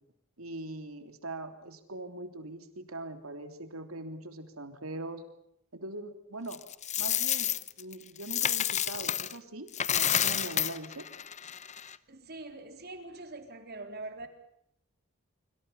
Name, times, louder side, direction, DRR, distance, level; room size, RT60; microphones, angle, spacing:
voice 1, 0.4-5.2 5.7-6.6 7.0-11.0, right 2 dB, 85° right, 7 dB, 3.3 m, -42 dB
Coin (dropping), 6.5-9.4 9.7-12.0, left 10 dB, 35° left, 0.8 m, -30 dB
voice 2, 12.1-14.3, right 2 dB, 50° right, 6 dB, 3.7 m, -43 dB
26.0 x 25.5 x 5.7 m, 0.76 s
head